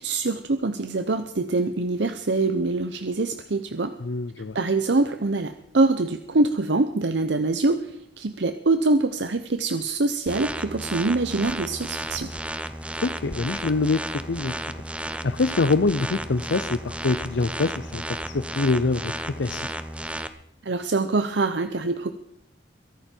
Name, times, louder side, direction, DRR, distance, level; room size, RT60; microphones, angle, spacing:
voice 1, 0.0-3.9 4.5-12.3 20.6-22.1, right 3 dB, 80° right, 9 dB, 0.8 m, -24 dB
voice 2, 4.0-4.6 13.0-14.5 15.2-19.7, left 3 dB, 85° left, 12 dB, 0.6 m, -25 dB
sound 1, 10.3-20.3, right 1 dB, 5° right, 0.8 m, -33 dB
23.0 x 11.5 x 4.5 m, 0.74 s
head